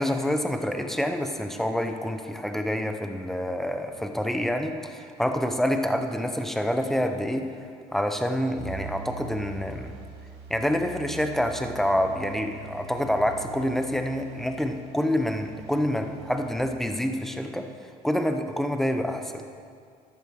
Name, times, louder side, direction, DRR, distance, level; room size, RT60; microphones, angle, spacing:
voice 1, 0.0-7.5 7.9-9.9 10.5-19.4, equal, ahead, 6 dB, 0.9 m, -27 dB
sound 1, 8.6-16.5, right 5 dB, 80° right, 2.3 m, -43 dB
14.0 x 11.0 x 4.8 m, 2.2 s
cardioid pair, 110°, 17 cm